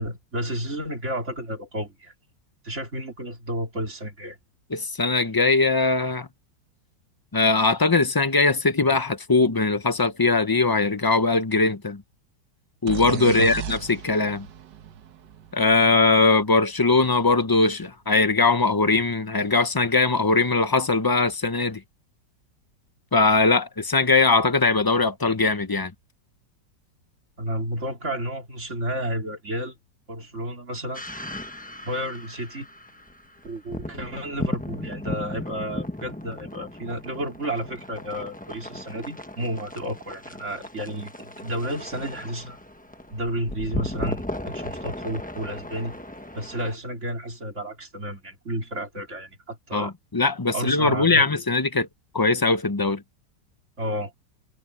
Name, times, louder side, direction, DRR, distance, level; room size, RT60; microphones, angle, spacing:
voice 1, 0.0-2.1 2.6-4.4 13.2-13.5 27.4-29.8 30.1-31.0 31.8-32.7 33.4-42.6 43.1-46.0 46.3-49.9 50.5-51.3 53.8-54.1, right 1 dB, 40° right, 4.1 m, -31 dB
voice 2, 4.7-6.3 7.3-12.0 12.8-14.5 15.5-21.8 23.1-25.9 49.7-51.9 52.1-53.0, left 3 dB, 30° left, 0.3 m, -21 dB
sound 1, 12.9-16.6, right 8 dB, 80° right, 1.6 m, -35 dB
sound 2, 30.9-46.8, left 1 dB, 5° left, 0.8 m, -36 dB
omnidirectional pair, 1.9 m